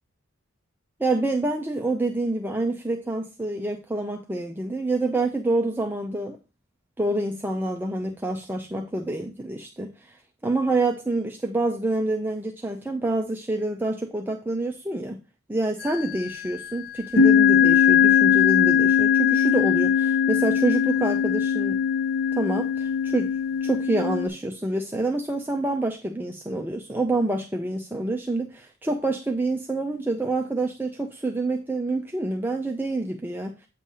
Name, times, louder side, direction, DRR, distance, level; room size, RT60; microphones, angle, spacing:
voice 1, 1.0-6.4 7.0-10.1 10.4-15.2 15.5-21.8 22.3-23.3 23.6-33.5, right 2 dB, 10° right, 1 dB, 0.6 m, -27 dB
sound 1, 15.8-16.3 17.1-24.3, left 8 dB, 80° left, 1.7 m, -20 dB
8.5 x 3.3 x 5.4 m, 0.28 s
head